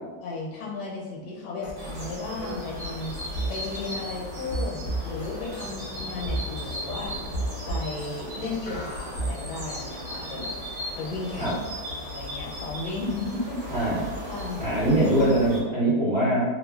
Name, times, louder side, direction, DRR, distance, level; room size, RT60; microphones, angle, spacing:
voice 1, 0.2-3.1 3.5-7.2 7.7-10.5 10.9-11.6 11.9-13.9 14.3-14.6, left 3 dB, 90° left, -3 dB, 1.3 m, -34 dB
sound 1, 1.6-1.7 2.0-2.5 3.3-3.5 4.5-5.7 6.3-6.8 7.3-8.2 8.7-9.3, right 2 dB, 60° left, 0.7 m, -31 dB
sound 2, 1.8-15.6, left 1 dB, 60° right, 1.0 m, -36 dB
voice 2, 14.6-16.4, right 1 dB, 40° right, -10 dB, 0.7 m, -22 dB
3.0 x 2.1 x 2.2 m, 1.2 s
omnidirectional pair, 1.8 m